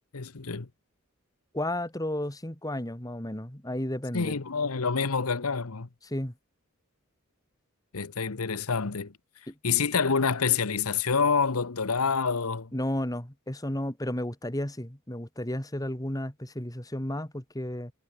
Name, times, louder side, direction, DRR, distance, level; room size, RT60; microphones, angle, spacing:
voice 1, 0.1-0.7 4.1-5.9 7.9-9.1 9.6-12.7, left 5 dB, 90° left, 1.1 m, -27 dB
voice 2, 1.5-4.4 6.0-6.3 9.5-9.6 12.7-17.9, left 1 dB, 15° left, 2.3 m, -33 dB
head